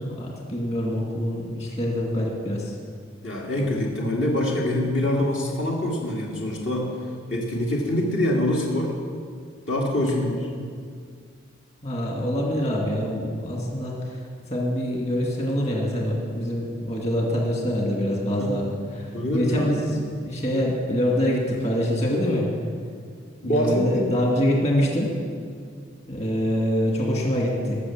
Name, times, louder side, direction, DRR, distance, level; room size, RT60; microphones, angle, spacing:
voice 1, 0.0-2.7 11.8-14.2 14.5-22.5 23.4-25.1 26.1-27.8, equal, 35° left, -2 dB, 2.4 m, -25 dB
voice 2, 3.2-6.9 7.3-8.9 9.7-10.5 18.4-18.6 19.1-19.7 23.4-24.1, left 1 dB, 60° left, -3 dB, 2.2 m, -25 dB
18.5 x 6.8 x 7.3 m, 2.1 s
head